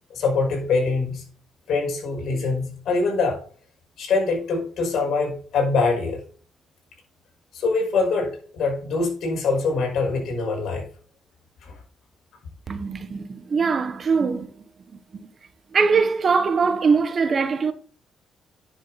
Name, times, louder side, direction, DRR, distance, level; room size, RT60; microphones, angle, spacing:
voice 1, 0.1-1.2 1.7-3.4 4.0-6.2 7.5-10.8 11.6-11.7, left 4 dB, 70° left, 5.2 m, -24 dB
voice 2, 12.7-14.5 15.7-17.7, right 5 dB, 45° right, 1.2 m, -21 dB
10.0 x 7.0 x 4.1 m
cardioid pair, 90°, 0 cm